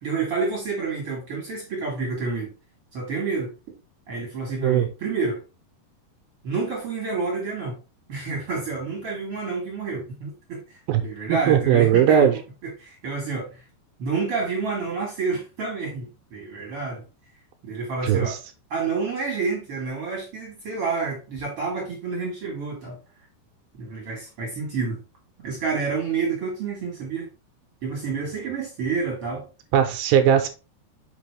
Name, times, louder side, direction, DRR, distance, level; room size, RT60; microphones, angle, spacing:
voice 1, 0.0-2.5 2.9-3.5 4.1-5.4 6.4-7.8 8.1-13.6 14.0-17.0 17.6-18.4 18.7-23.0 23.8-25.0 25.4-27.3 27.8-29.5, right 4 dB, 45° right, 2.0 m, -29 dB
voice 2, 11.3-12.3 18.0-18.4 29.7-30.5, right 9 dB, 75° right, 2.4 m, -18 dB
6.2 x 5.9 x 3.4 m
omnidirectional pair, 4.6 m